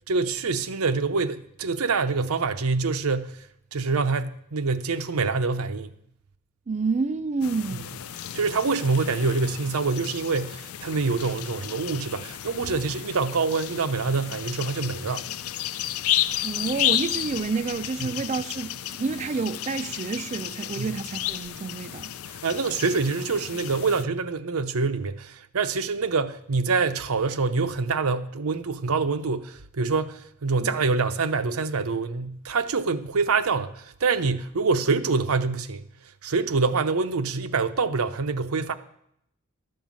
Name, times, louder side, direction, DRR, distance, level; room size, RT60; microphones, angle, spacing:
voice 1, 0.1-3.4 3.7-5.9 7.7-7.8 8.3-15.2 18.0-18.1 20.8-21.0 22.3-35.8 36.2-38.7, right 4 dB, 85° right, 0.7 m, -26 dB
voice 2, 6.7-8.0 16.4-22.1, right 4 dB, 35° right, 0.3 m, -29 dB
sound 1, 7.4-24.0, left 12 dB, 80° left, 0.4 m, -32 dB
12.5 x 5.5 x 7.4 m
head